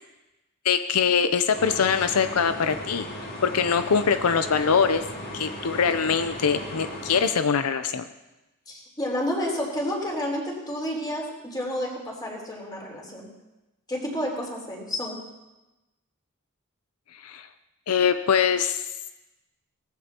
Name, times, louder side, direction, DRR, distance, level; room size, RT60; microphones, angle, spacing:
voice 1, 0.6-3.1 3.4-5.0 5.3-8.0 17.2-17.5 17.9-18.8, left 6 dB, 85° left, 10 dB, 0.6 m, -23 dB
sound 1, 1.5-7.3, left 1 dB, 50° left, 5.0 m, -37 dB
voice 2, 8.7-13.2 13.9-15.2, left 1 dB, 20° left, -3 dB, 3.9 m, -30 dB
18.5 x 15.0 x 2.9 m, 1.0 s
head